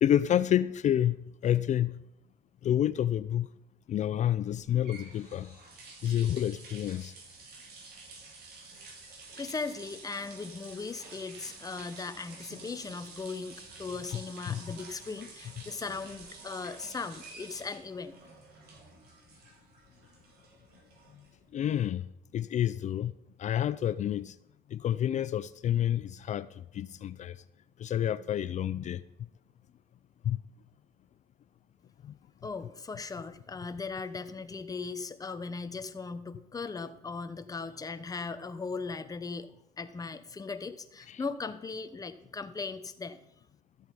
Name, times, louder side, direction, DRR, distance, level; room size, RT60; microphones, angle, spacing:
voice 1, 0.0-2.0 2.6-3.5 3.9-5.6 6.0-7.1 14.1-14.2 14.5-14.6 21.5-22.1 22.3-23.1 23.4-24.4 24.7-26.5 26.7-27.4 27.8-29.0 30.3-30.4 32.0-32.1 41.1-41.2, left 10 dB, 45° left, 0.4 m, -29 dB
sound 1, 4.6-21.6, right 3 dB, 75° right, 4.2 m, -50 dB
voice 2, 9.4-18.1 32.4-39.5 39.8-43.2, left 4 dB, 20° left, 0.9 m, -38 dB
13.5 x 7.9 x 5.3 m
cardioid pair, 110°, 17 cm